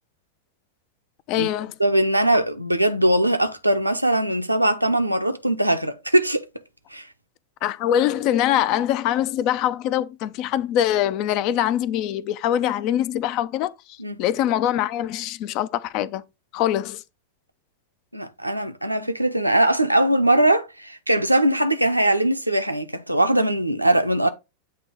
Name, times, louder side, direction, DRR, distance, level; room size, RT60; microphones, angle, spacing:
voice 1, 1.3-1.7 7.6-13.7 14.2-16.2 16.5-17.0, left 11 dB, 40° left, 0.5 m, -23 dB
voice 2, 1.8-6.4 6.9-7.1 14.0-14.2 18.1-24.3, right 1 dB, 85° right, 0.8 m, -21 dB
8.1 x 3.0 x 4.8 m
figure-of-eight pair, 90°, 0 cm